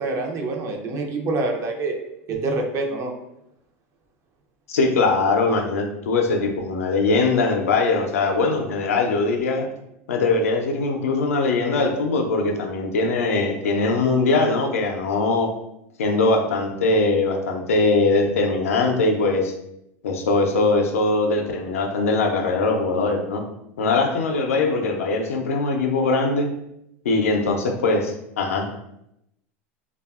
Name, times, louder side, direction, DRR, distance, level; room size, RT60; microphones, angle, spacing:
voice 1, 0.0-1.9 2.3-3.1, right 3 dB, 40° right, 2 dB, 0.5 m, -26 dB
voice 2, 4.7-9.7 10.1-15.5 16.0-19.5 20.0-23.4 23.8-26.5 27.0-28.7, left 3 dB, 85° left, 4 dB, 0.4 m, -21 dB
2.6 x 2.2 x 2.3 m, 0.82 s
hypercardioid pair, 105°, 7 cm